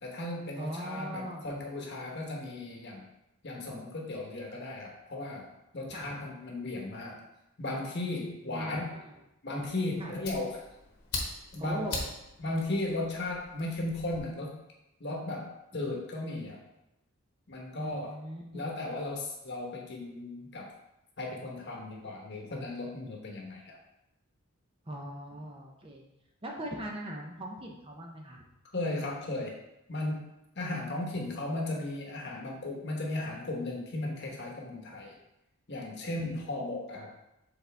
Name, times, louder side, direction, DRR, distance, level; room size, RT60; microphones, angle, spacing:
voice 1, 0.0-3.1 3.4-7.2 7.6-8.8 9.4-10.6 11.5-11.9 12.4-14.6 15.0-16.6 17.5-18.1 18.5-20.7 21.2-23.8 28.7-29.6 29.9-30.2 30.5-35.1 35.7-37.1, left 2 dB, 50° left, -1 dB, 1.1 m, -36 dB
voice 2, 0.6-1.5 5.9-6.2 8.5-9.1 10.0-10.2 11.6-12.0 17.8-18.6 24.9-26.0 26.4-28.4 36.2-36.3, right 1 dB, 25° right, -1 dB, 0.7 m, -40 dB
Fire, 9.6-14.2, left 3 dB, 80° left, 1.4 m, -41 dB
7.0 x 4.0 x 3.4 m, 0.89 s
head